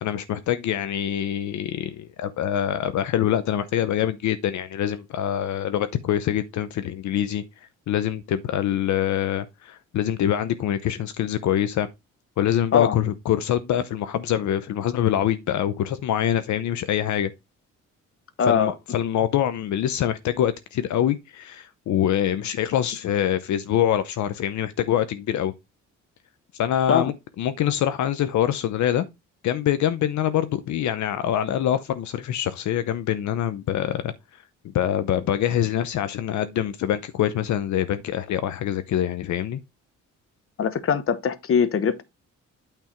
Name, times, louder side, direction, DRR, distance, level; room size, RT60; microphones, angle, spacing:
voice 1, 0.0-7.4 7.9-11.9 12.4-17.3 18.5-25.5 26.5-29.0 29.4-34.1 34.7-39.6, left 10 dB, 70° left, 0.8 m, -25 dB
voice 2, 18.4-18.7 26.9-27.1 40.6-42.0, left 7 dB, 45° left, 1.1 m, -22 dB
9.0 x 3.5 x 4.4 m
cardioid pair, 90°, 30 cm